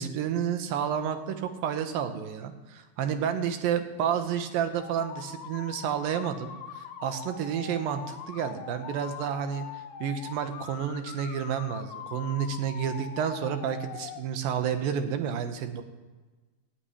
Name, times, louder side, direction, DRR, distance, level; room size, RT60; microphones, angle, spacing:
voice 1, 0.0-6.5 6.8-9.7 10.0-15.8, right 8 dB, 75° right, 8 dB, 2.6 m, -30 dB
sound 1, 4.8-14.2, left 8 dB, 75° left, 2.8 m, -42 dB
15.0 x 6.1 x 9.7 m, 1.3 s
omnidirectional pair, 4.5 m